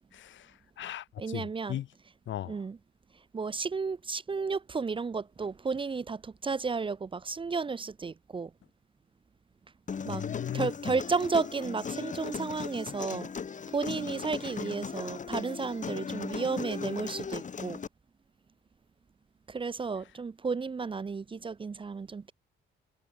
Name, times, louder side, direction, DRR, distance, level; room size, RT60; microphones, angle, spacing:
voice 1, 0.1-1.9 2.3-2.6 10.1-11.0, left 12 dB, 75° left, 2.2 m, -38 dB
voice 2, 1.2-1.8 2.5-2.8 3.3-8.5 10.0-10.2 10.5-13.3 13.7-17.8 19.5-22.3, right 4 dB, 25° right, 0.6 m, -33 dB
Human voice, 9.9-17.9, left 6 dB, 40° left, 2.1 m, -37 dB
cardioid pair, 90°, 20 cm